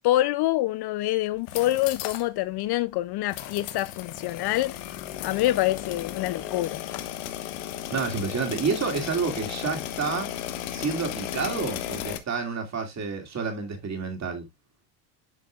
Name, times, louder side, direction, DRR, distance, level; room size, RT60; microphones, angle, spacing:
voice 1, 0.0-4.8 5.2-6.8, left 16 dB, 55° left, 0.5 m, -26 dB
sound 1, 1.3-2.3 2.6-2.7 3.3-12.2, left 12 dB, 80° left, 1.4 m, -35 dB
voice 2, 7.9-10.3 10.7-14.4, right 5 dB, 30° right, 2.5 m, -29 dB
11.5 x 5.1 x 2.3 m
cardioid pair, 120°, 50 cm